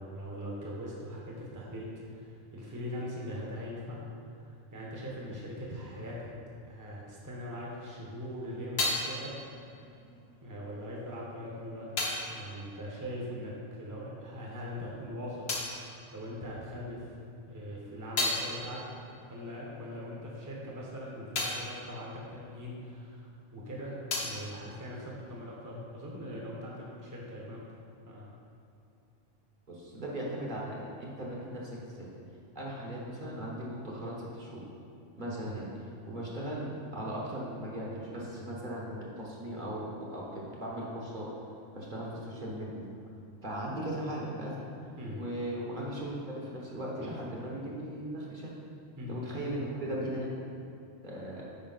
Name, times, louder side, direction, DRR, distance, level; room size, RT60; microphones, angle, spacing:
voice 1, 0.0-4.0 4.7-6.3 6.6-9.8 10.4-11.9 12.3-15.4 15.7-17.2 17.5-18.8 19.3-27.6 28.1-28.3 45.0-45.2 47.0-47.2 49.0-49.2, equal, 15° right, -4 dB, 1.0 m, -41 dB
sound 1, 8.0-14.0 14.2-16.9 17.3-23.4 23.6-25.6, left 2 dB, 55° left, 1.2 m, -38 dB
voice 2, 29.7-32.1 32.5-34.7 35.2-35.7 36.1-41.3 41.7-42.8 43.4-44.6 45.1-48.5 49.1-50.3 51.0-51.4, right 1 dB, 40° right, -4 dB, 1.3 m, -38 dB
9.0 x 5.1 x 4.0 m, 2.6 s
omnidirectional pair, 1.3 m